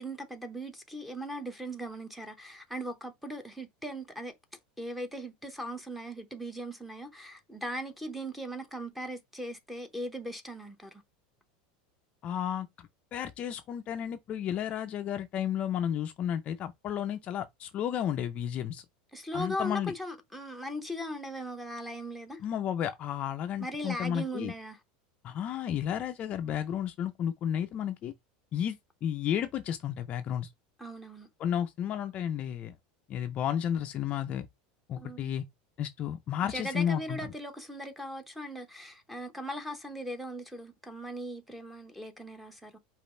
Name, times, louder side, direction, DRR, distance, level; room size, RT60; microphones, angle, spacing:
voice 1, 0.0-4.4 4.8-11.0 19.1-22.4 23.6-24.8 30.8-31.3 35.0-35.3 36.4-42.8, equal, ahead, 0.7 m, -39 dB
voice 2, 12.2-12.7 13.1-18.8 19.3-19.9 22.4-24.5 25.2-28.1 28.5-30.5 31.4-32.7 33.1-34.5 34.9-35.4 35.8-37.2, left 9 dB, 30° left, 0.4 m, -32 dB
5.1 x 2.4 x 4.3 m
supercardioid pair, 160°, 4 cm